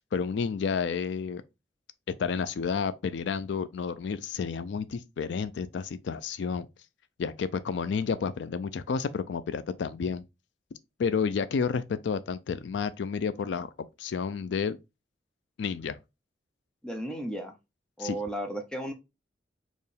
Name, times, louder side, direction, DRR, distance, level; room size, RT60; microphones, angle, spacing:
voice 1, 0.1-1.4 2.2-6.7 7.2-10.2 11.0-13.7 14.0-14.8 15.6-16.0 18.0-18.2, left 6 dB, 75° left, 0.4 m, -30 dB
voice 2, 16.8-17.5 18.0-18.9, right 1 dB, 5° left, 0.7 m, -34 dB
4.5 x 3.0 x 3.3 m
head